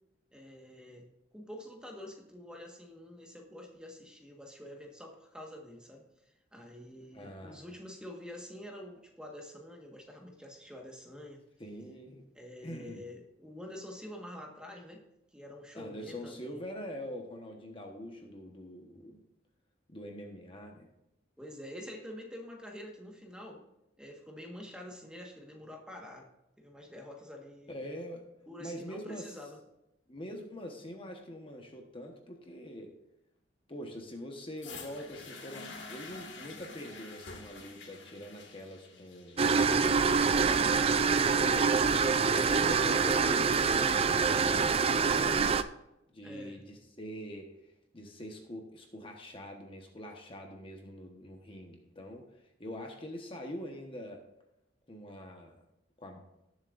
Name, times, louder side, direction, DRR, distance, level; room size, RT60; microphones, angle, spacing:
voice 1, 0.3-1.1 1.3-6.1 6.5-11.4 12.3-15.0 15.3-16.6 21.4-23.6 24.0-26.3 26.6-27.8 28.5-29.6 46.2-46.6, left 1 dB, 5° right, 0 dB, 1.5 m, -47 dB
voice 2, 7.1-7.6 11.6-12.2 12.6-13.0 15.7-19.2 19.9-20.9 27.7-28.2 28.6-29.3 30.1-32.9 33.7-41.9 42.4-45.5 46.1-54.2 54.9-55.6 56.0-56.2, equal, 30° left, 2 dB, 1.2 m, -44 dB
sound 1, 34.6-42.6 43.4-43.5, left 3 dB, 75° left, 2.0 m, -49 dB
sound 2, 39.4-45.6, right 5 dB, 30° right, 0.4 m, -26 dB
19.0 x 7.4 x 2.6 m, 0.88 s
head